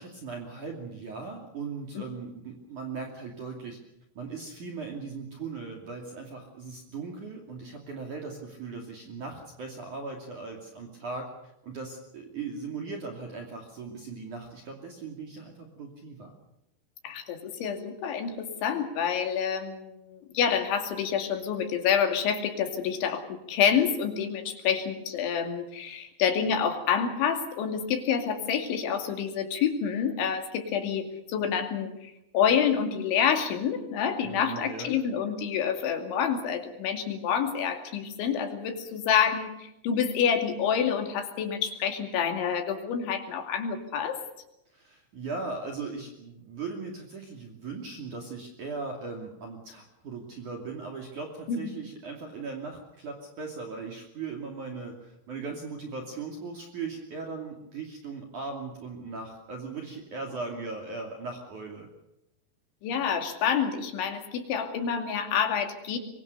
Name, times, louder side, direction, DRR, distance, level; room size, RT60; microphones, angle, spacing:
voice 1, 0.0-3.8 4.2-11.3 11.6-16.3 34.2-34.9 44.7-61.9, right 4 dB, 45° right, 1 dB, 3.7 m, -38 dB
voice 2, 17.0-44.2 51.5-51.6 62.8-66.0, left 7 dB, 70° left, 5 dB, 4.8 m, -28 dB
24.5 x 23.0 x 6.7 m, 0.83 s
omnidirectional pair, 5.6 m